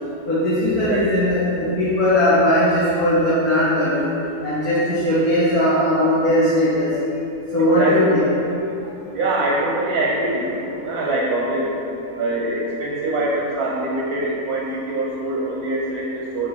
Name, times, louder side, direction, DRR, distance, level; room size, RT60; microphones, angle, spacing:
voice 1, 0.3-4.1 4.4-6.9 7.5-8.3, left 1 dB, 80° left, -12 dB, 2.1 m, -18 dB
voice 2, 0.9-1.2 7.6-8.1 8.8-11.9 12.2-16.5, right 2 dB, 85° right, -3 dB, 1.4 m, -24 dB
9.5 x 3.3 x 5.8 m, 2.9 s
omnidirectional pair, 1.5 m